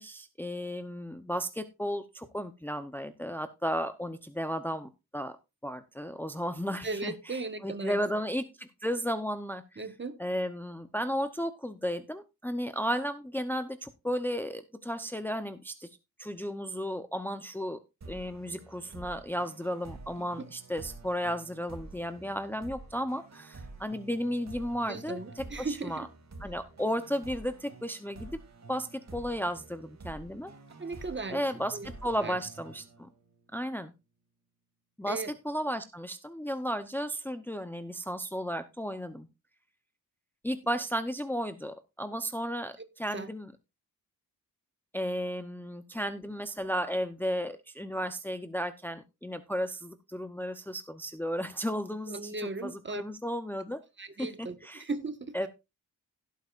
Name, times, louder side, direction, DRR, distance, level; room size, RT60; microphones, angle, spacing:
voice 1, 0.0-5.4 5.6-7.1 7.6-9.8 10.2-15.9 16.2-17.8 18.1-26.1 26.4-28.3 28.7-30.5 31.3-33.1 33.5-33.9 35.0-39.3 40.4-43.5 44.9-52.3 52.6-53.8 54.2-54.8 55.3-55.5, equal, 5° left, 0.7 m, -34 dB
voice 2, 6.8-8.0 9.8-10.2 20.2-20.3 24.9-26.1 30.8-31.4 31.7-31.9 32.2-32.4 35.1-35.3 43.1-43.3 52.1-53.0 54.0-55.5, right 3 dB, 30° right, 1.4 m, -37 dB
sound 1, 18.0-33.5, right 3 dB, 45° right, 2.6 m, -49 dB
17.0 x 8.1 x 2.5 m
wide cardioid pair, 120°, 36 cm